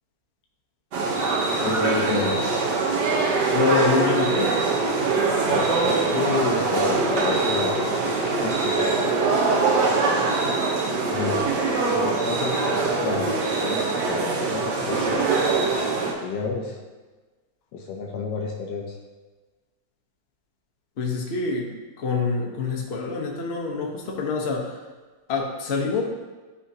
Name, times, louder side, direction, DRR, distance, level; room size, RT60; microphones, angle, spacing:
sound 1, 0.9-16.1, right 3 dB, 65° right, 1.5 m, -23 dB
voice 1, 1.6-2.5 5.4-8.0 8.4-9.4 11.1-11.5 11.8-15.2 16.2-16.8 17.7-19.0, left 4 dB, 70° left, 0 dB, 1.3 m, -30 dB
voice 2, 3.5-4.6 21.0-24.8 25.3-26.0, left 4 dB, 45° left, 0 dB, 0.9 m, -26 dB
11.0 x 4.3 x 2.7 m, 1.3 s
omnidirectional pair, 2.1 m